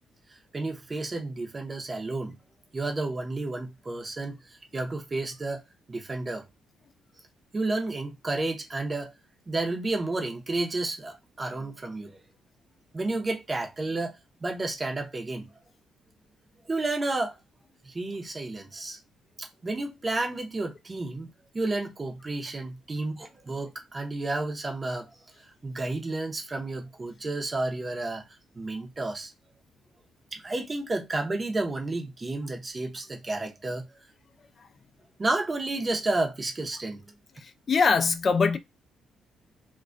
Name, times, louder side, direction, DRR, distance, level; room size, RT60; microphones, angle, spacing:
voice 1, 0.5-2.3 2.7-5.6 5.9-6.4 7.5-9.1 9.5-12.2 12.9-14.2 14.4-15.5 16.7-17.4 17.8-19.0 19.4-21.3 21.5-25.1 25.6-28.2 28.5-29.3 30.3-33.8 35.2-37.0, right 2 dB, 30° right, 0.7 m, -31 dB
voice 2, 37.7-38.6, left 5 dB, 45° left, 0.3 m, -22 dB
2.2 x 2.2 x 2.5 m
cardioid pair, 90°, 0 cm